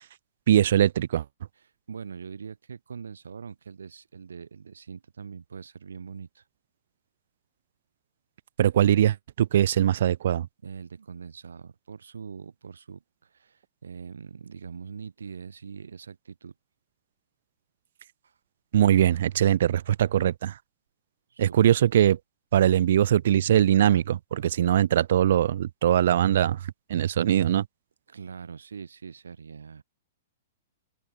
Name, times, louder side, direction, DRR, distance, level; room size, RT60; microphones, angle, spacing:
voice 1, 0.5-1.2 8.6-10.5 18.7-20.6 21.4-22.2 22.5-26.6 26.9-27.6, right 11 dB, 70° right, 1.6 m, -21 dB
voice 2, 1.6-6.4 10.6-16.5 18.2-18.4 21.3-21.7 28.1-29.8, right 6 dB, 90° right, 5.4 m, -42 dB
open air
hypercardioid pair, 125°, 0 cm